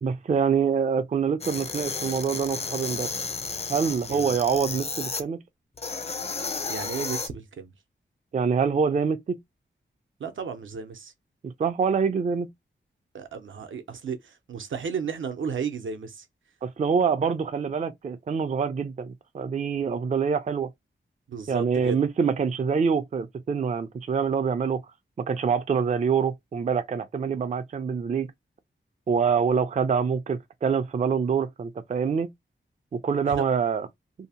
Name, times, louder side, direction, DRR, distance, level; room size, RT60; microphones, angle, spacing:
voice 1, 0.0-3.1 3.7-5.4 8.3-9.4 11.4-12.5 16.6-20.7 21.5-24.8 25.3-28.3 29.1-32.3 32.9-33.9, right 6 dB, 40° right, 0.4 m, -25 dB
sound 1, 1.4-5.2 5.8-7.3, left 4 dB, 30° left, 0.4 m, -33 dB
voice 2, 6.7-7.7 10.2-11.1 13.1-16.2 21.3-22.0 33.2-33.4, right 6 dB, 80° right, 0.7 m, -33 dB
2.7 x 2.0 x 2.7 m
wide cardioid pair, 95°, 20 cm